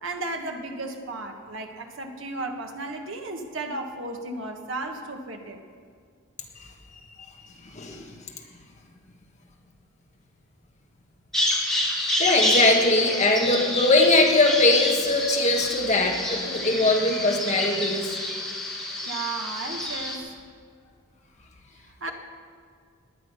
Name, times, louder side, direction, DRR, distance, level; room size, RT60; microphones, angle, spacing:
voice 1, 0.0-5.6 19.0-20.4 22.0-22.1, right 2 dB, 65° right, 4 dB, 1.4 m, -34 dB
voice 2, 7.6-8.1 12.2-18.2, left 2 dB, 35° left, 1 dB, 1.5 m, -21 dB
Bird vocalization bird call bird song, 11.3-20.2, left 1 dB, ahead, 1.8 m, -28 dB
19.0 x 10.0 x 5.5 m, 2.1 s
head